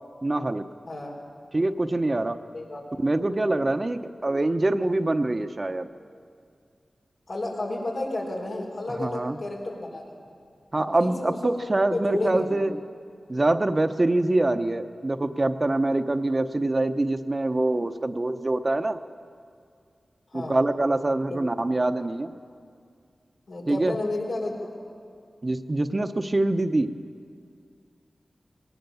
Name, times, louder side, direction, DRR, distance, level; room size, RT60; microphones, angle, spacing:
voice 1, 0.2-0.7 1.5-2.4 3.0-5.9 9.0-9.4 10.7-12.8 13.3-19.0 20.3-22.3 23.7-24.0 25.4-26.9, right 2 dB, 40° right, 8 dB, 0.9 m, -24 dB
voice 2, 7.3-10.0 11.0-11.5 11.9-12.5 20.3-20.6 21.3-21.4 23.5-24.7, left 2 dB, 90° left, -3 dB, 4.8 m, -31 dB
20.0 x 18.5 x 7.0 m, 2.3 s
cardioid pair, 50°, 0 cm